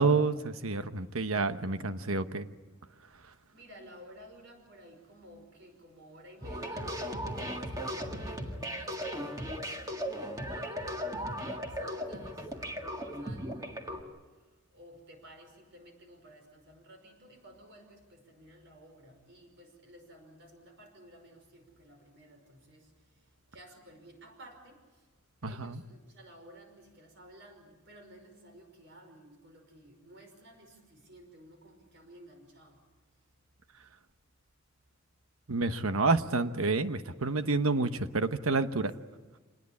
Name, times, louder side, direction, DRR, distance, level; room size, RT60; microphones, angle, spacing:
voice 1, 0.0-2.4 25.4-25.8 35.5-38.9, right 3 dB, 80° right, 10 dB, 1.1 m, -29 dB
voice 2, 1.7-2.4 3.5-14.2 14.7-22.9 23.5-25.0 25.5-32.8, right 1 dB, 55° right, 5 dB, 5.5 m, -54 dB
sound 1, 6.4-14.0, equal, 15° right, 1.9 m, -37 dB
26.5 x 20.0 x 8.5 m, 1.3 s
head